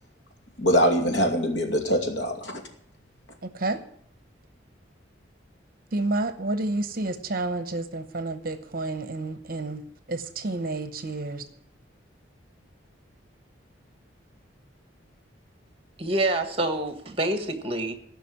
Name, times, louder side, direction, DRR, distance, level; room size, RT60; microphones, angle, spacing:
voice 1, 0.6-2.6, equal, 75° left, 4 dB, 2.5 m, -23 dB
voice 2, 3.4-3.8 5.9-9.8 10.1-11.4, right 2 dB, 50° right, 10 dB, 0.9 m, -30 dB
voice 3, 16.0-17.9, right 1 dB, 30° right, 8 dB, 1.4 m, -27 dB
15.5 x 6.0 x 9.8 m, 0.67 s
head